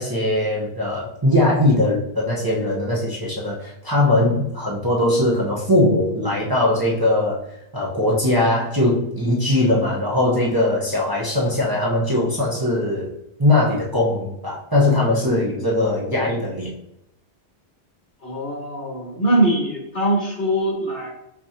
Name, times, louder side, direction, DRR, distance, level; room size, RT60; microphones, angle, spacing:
voice 1, 0.0-7.4 7.7-13.1 13.4-16.7, left 1 dB, 20° right, -5 dB, 0.8 m, -20 dB
voice 2, 18.2-21.1, right 1 dB, 70° left, -5 dB, 2.2 m, -22 dB
5.8 x 3.1 x 2.8 m, 0.83 s
omnidirectional pair, 1.1 m